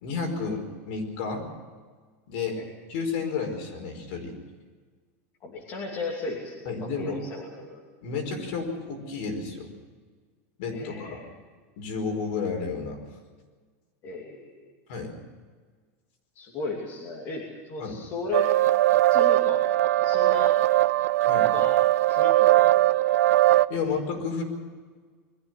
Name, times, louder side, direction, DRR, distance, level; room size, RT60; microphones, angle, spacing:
voice 1, 0.0-1.5 2.3-2.6 2.9-4.3 6.6-7.2 8.0-9.7 10.6-11.2 11.8-13.0 14.9-15.1 17.8-17.9 21.2-21.5 23.7-24.4, left 5 dB, 50° left, 4 dB, 4.9 m, -31 dB
voice 2, 5.4-7.8 10.7-11.3 14.0-14.7 16.3-18.5 19.1-19.6 20.0-20.6 21.4-21.8 22.1-23.0, left 3 dB, 25° left, -2 dB, 2.9 m, -35 dB
sound 1, 18.3-23.7, right 15 dB, 80° right, 0.6 m, -20 dB
22.5 x 14.5 x 9.3 m, 1.5 s
supercardioid pair, 180°, 8 cm